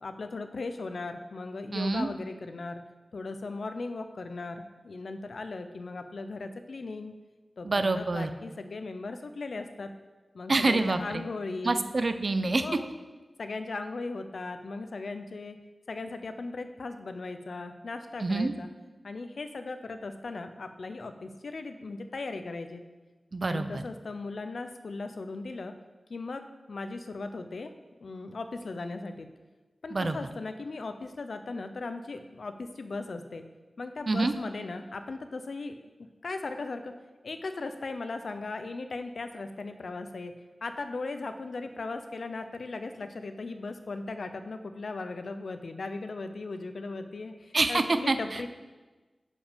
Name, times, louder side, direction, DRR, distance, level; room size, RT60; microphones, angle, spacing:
voice 1, 0.0-2.8 3.1-7.1 7.6-9.9 10.3-11.8 12.6-12.8 13.4-15.6 15.9-18.7 19.0-22.8 23.5-25.7 26.1-27.7 28.0-29.3 29.8-33.5 33.8-35.7 36.2-36.9 37.2-40.3 40.6-48.5, left 3 dB, 70° left, 8 dB, 0.6 m, -38 dB
voice 2, 1.7-2.1 7.6-8.3 10.5-11.0 11.6-12.7 18.2-18.5 23.3-23.8 29.9-30.2 34.1-34.3 47.5-48.5, right 3 dB, 50° right, 9 dB, 0.6 m, -26 dB
10.5 x 5.1 x 5.1 m, 1.2 s
wide cardioid pair, 100°, 0 cm